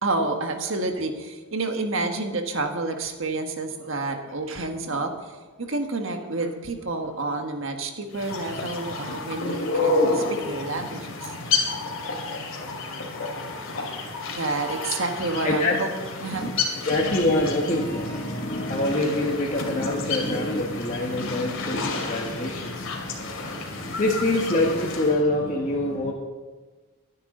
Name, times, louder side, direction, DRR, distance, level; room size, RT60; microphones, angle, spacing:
voice 1, 0.0-11.4 14.3-15.9 16.2-16.5, right 2 dB, 65° right, 5 dB, 1.6 m, -29 dB
sound 1, 8.1-25.2, left 3 dB, 65° left, 2.6 m, -30 dB
voice 2, 15.4-15.7 16.3-16.5 16.8-26.1, left 1 dB, 35° left, -3 dB, 1.5 m, -25 dB
24.0 x 9.7 x 3.9 m, 1.3 s
head